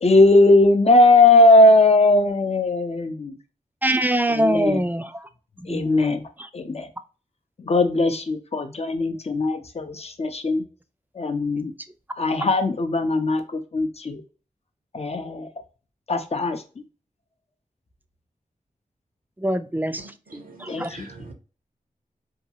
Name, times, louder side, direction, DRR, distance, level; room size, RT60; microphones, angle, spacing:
voice 1, 0.0-3.4 4.3-4.9 5.6-6.2 6.5-6.9 7.6-10.6 11.2-11.7 12.2-14.2 14.9-15.5 16.1-16.6 20.7-21.1, left 2 dB, 45° left, 6 dB, 0.6 m, -19 dB
voice 2, 3.8-5.1 5.7-5.9 19.4-20.0 20.6-20.9, right 1 dB, 10° right, 10 dB, 0.4 m, -23 dB
voice 3, 20.0-21.3, right 3 dB, 80° right, 5 dB, 0.7 m, -44 dB
2.8 x 2.3 x 2.7 m, 0.35 s
cardioid pair, 50°, 15 cm